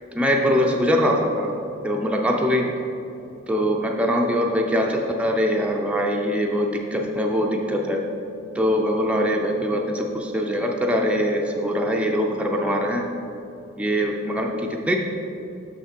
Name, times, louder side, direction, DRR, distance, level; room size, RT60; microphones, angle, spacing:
voice 1, 0.1-1.5 1.8-2.7 3.5-8.0 8.5-13.0 13.8-15.0, equal, 5° right, 0 dB, 0.3 m, -22 dB
6.0 x 5.8 x 4.4 m, 2.7 s
head